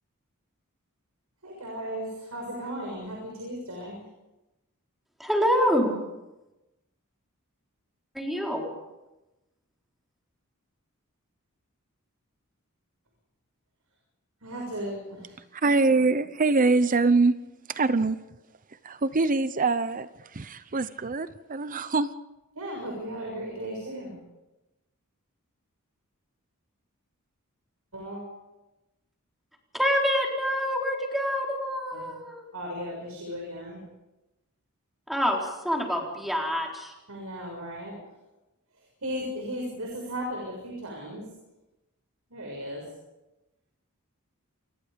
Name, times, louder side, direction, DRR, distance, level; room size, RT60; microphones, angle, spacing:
voice 1, 1.4-4.0 14.4-15.3 22.6-24.1 27.9-28.2 31.9-32.1 32.5-33.8 37.1-38.0 39.0-41.2 42.3-42.8, equal, 90° right, 6.8 m, -36 dB
voice 2, 5.2-5.9 8.1-8.6 29.8-32.4 35.1-36.9, equal, ahead, 4.2 m, -26 dB
voice 3, 15.6-17.3 17.7-18.2 18.8-20.1 20.3-22.1, right 3 dB, 40° right, 0.7 m, -23 dB
28.5 x 22.0 x 5.2 m
head